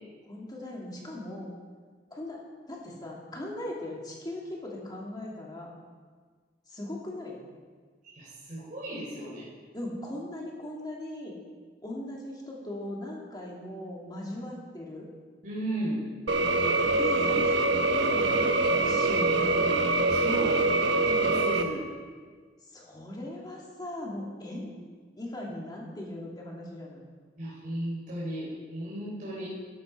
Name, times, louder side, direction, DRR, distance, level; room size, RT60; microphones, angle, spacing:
voice 1, 0.3-1.5 2.1-2.4 2.7-5.7 6.7-7.4 9.7-11.3 11.8-15.1 17.0-19.6 22.7-24.7 25.1-27.0, left 1 dB, 25° left, -3 dB, 2.5 m, -39 dB
voice 2, 8.1-9.4 15.4-16.0 20.1-20.6 21.0-21.8 27.4-29.5, right 1 dB, 50° right, -8 dB, 3.5 m, -35 dB
sound 1, 16.3-21.6, right 2 dB, 90° right, 0.9 m, -24 dB
13.0 x 11.5 x 4.5 m, 1.5 s
head